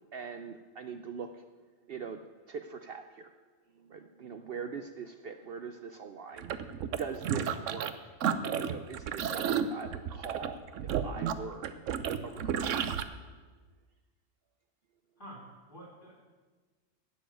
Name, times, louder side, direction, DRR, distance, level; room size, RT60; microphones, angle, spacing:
voice 1, 0.1-1.4 1.9-2.2 2.5-3.3 3.8-6.5 6.8-8.1 8.6-10.6 11.0-11.7 12.2-12.7, right 6 dB, 60° right, 7 dB, 0.7 m, -42 dB
sound 1, 6.4-7.9 8.2-13.0, right 8 dB, 80° right, 1.0 m, -32 dB
voice 2, 15.2-16.4, equal, 40° left, -4 dB, 3.6 m, -49 dB
11.0 x 7.4 x 9.1 m, 1.4 s
omnidirectional pair, 1.3 m